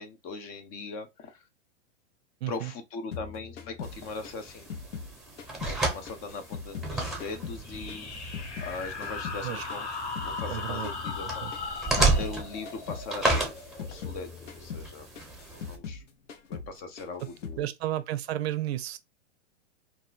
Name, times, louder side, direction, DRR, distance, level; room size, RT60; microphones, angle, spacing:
voice 1, 0.0-1.4 2.5-4.7 5.6-8.1 8.6-9.9 10.2-13.5 13.8-15.1 15.5-16.0 16.5-17.7, left 4 dB, 35° left, 0.6 m, -40 dB
voice 2, 2.4-2.7 9.4-9.7 10.5-10.9 11.4-11.5 17.2-17.3 17.6-19.0, right 13 dB, 60° right, 0.5 m, -32 dB
sound 1, 3.1-5.8 6.1-8.8 9.0-12.4 12.6-13.1 13.3-16.0 16.3-16.7 17.0-17.6, left 6 dB, 85° left, 0.7 m, -41 dB
sound 2, 3.8-15.8, right 2 dB, ahead, 0.8 m, -33 dB
sound 3, 7.6-14.9, left 4 dB, 65° left, 1.0 m, -39 dB
2.5 x 2.0 x 3.8 m
hypercardioid pair, 115°, 36 cm